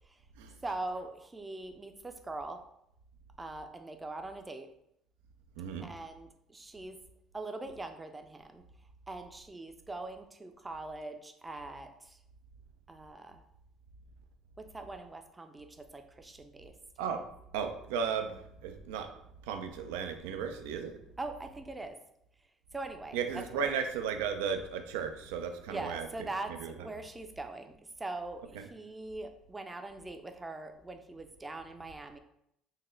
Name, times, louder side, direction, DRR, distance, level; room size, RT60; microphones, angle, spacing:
voice 1, 0.6-2.6 3.4-4.7 5.8-7.0 7.3-8.6 9.1-11.9 12.9-13.4 14.6-15.7 15.9-16.7 21.2-22.0 22.7-23.2 23.5-23.7 25.7-32.2, right 2 dB, 20° right, 6 dB, 0.5 m, -42 dB
voice 2, 5.6-5.9 17.0-17.2 17.5-19.1 19.5-20.9 23.1-26.1 26.5-26.7 28.5-28.7, right 6 dB, 85° right, 6 dB, 0.4 m, -35 dB
4.0 x 2.1 x 3.8 m, 0.77 s
supercardioid pair, 75°, 0 cm